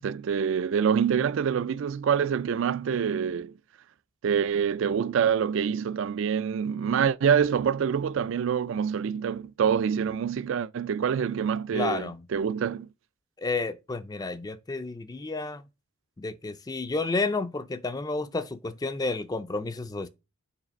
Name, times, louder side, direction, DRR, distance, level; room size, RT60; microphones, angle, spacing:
voice 1, 0.0-3.5 4.2-12.9, right 7 dB, 60° right, 0.3 m, -26 dB
voice 2, 11.7-12.2 13.4-15.6 16.2-20.1, left 3 dB, 20° left, 0.3 m, -31 dB
7.4 x 3.2 x 5.1 m
head